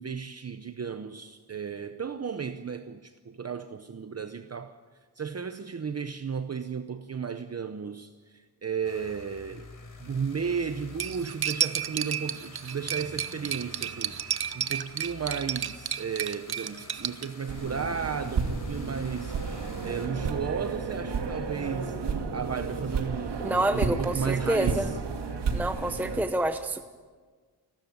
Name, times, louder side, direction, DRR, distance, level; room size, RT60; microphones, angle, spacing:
voice 1, 0.0-4.8 5.2-9.7 10.0-22.0 22.3-24.9, right 6 dB, 40° right, 0.8 m, -34 dB
sound 1, 8.8-20.1, left 3 dB, 50° left, 4.3 m, -48 dB
Cutlery silverware, 11.0-17.3, right 9 dB, 65° right, 0.9 m, -32 dB
sound 2, 17.5-26.2, right 4 dB, 85° right, 2.4 m, -32 dB
voice 2, 23.4-24.9 25.5-26.8, right 1 dB, 5° right, 0.8 m, -28 dB
29.0 x 13.0 x 9.4 m
wide cardioid pair, 140°, 40 cm